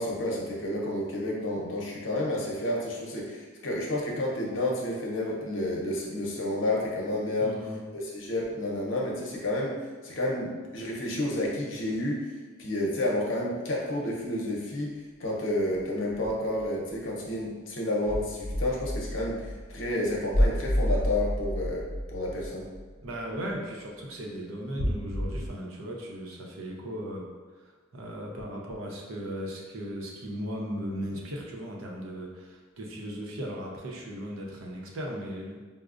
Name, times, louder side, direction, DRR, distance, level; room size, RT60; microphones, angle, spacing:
voice 1, 0.0-7.6 7.9-9.8 10.0-12.3 12.6-22.7, left 1 dB, 65° left, -2 dB, 0.7 m, -30 dB
voice 2, 7.4-7.8 23.0-27.3 27.6-27.7 27.9-35.6, equal, 85° right, -1 dB, 0.7 m, -37 dB
sound 1, 16.1-16.6 16.9-17.0 18.0-23.1 24.8-25.5, equal, 30° right, 0.6 m, -30 dB
4.9 x 2.0 x 2.4 m, 1.4 s
head